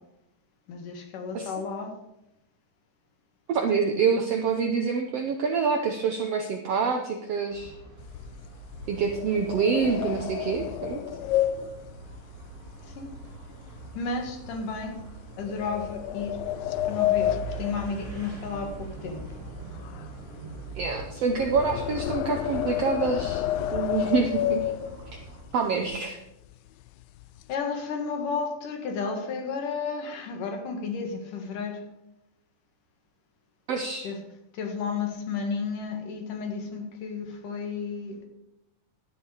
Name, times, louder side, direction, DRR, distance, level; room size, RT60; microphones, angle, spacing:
voice 1, 0.7-1.9 12.8-13.1 13.9-15.0 15.4-16.4 16.8-19.2 27.5-31.8 34.0-34.2 34.5-38.3, left 5 dB, 70° left, 3 dB, 3.2 m, -32 dB
voice 2, 3.5-7.7 8.9-11.0 20.7-23.4 23.7-24.7 25.5-26.2 33.7-34.1, right 5 dB, 75° right, 4 dB, 1.5 m, -26 dB
sound 1, 7.5-25.4, right 4 dB, 35° right, 5.5 m, -43 dB
sound 2, 8.0-13.4 13.7-14.0 14.5-14.6 15.4-18.8 19.0-25.3 25.9-26.0 26.3-26.5 26.9-27.5, left 13 dB, 90° left, 2.3 m, -31 dB
12.0 x 10.5 x 4.9 m, 0.88 s
omnidirectional pair, 3.9 m